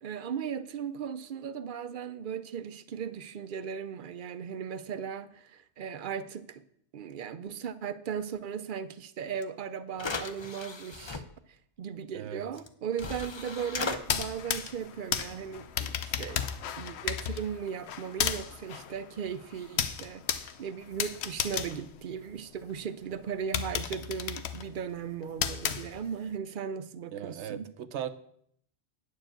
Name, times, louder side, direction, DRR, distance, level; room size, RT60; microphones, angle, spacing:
voice 1, 0.0-6.6 6.9-11.2 11.8-16.5 16.8-27.7, right 7 dB, 55° right, 13 dB, 0.7 m, -37 dB
sound 1, 9.4-9.5 9.9-11.2 12.6-12.7 13.0-14.0, left 4 dB, 35° left, 0.5 m, -36 dB
sound 2, 14.0-22.7 23.1-23.2 23.5-26.3, left 8 dB, 75° left, 0.9 m, -34 dB
voice 2, 27.1-28.1, right 9 dB, 85° right, 13 dB, 1.0 m, -37 dB
9.3 x 4.8 x 7.6 m, 0.67 s
omnidirectional pair, 1.1 m